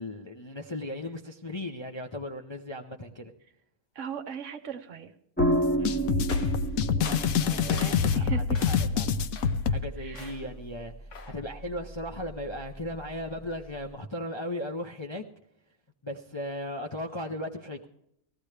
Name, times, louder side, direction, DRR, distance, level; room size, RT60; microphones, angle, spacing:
voice 1, 0.0-3.3 5.8-6.2 7.1-9.1 9.7-10.9 11.2-15.2 16.0-17.9, left 1 dB, 30° left, 1 dB, 0.6 m, -37 dB
voice 2, 3.9-5.1 7.5-8.4 10.0-10.3, right 7 dB, 60° right, 8 dB, 1.1 m, -38 dB
sound 1, 5.4-9.8, left 6 dB, 75° left, 1.1 m, -26 dB
sound 2, 5.4-13.9, right 1 dB, 10° left, 0.9 m, -34 dB
sound 3, 6.3-8.2 8.5-9.0 9.3-9.7 10.1-10.6 11.1-11.5, left 5 dB, 60° left, 1.4 m, -44 dB
18.5 x 15.0 x 3.3 m, 0.76 s
omnidirectional pair, 1.5 m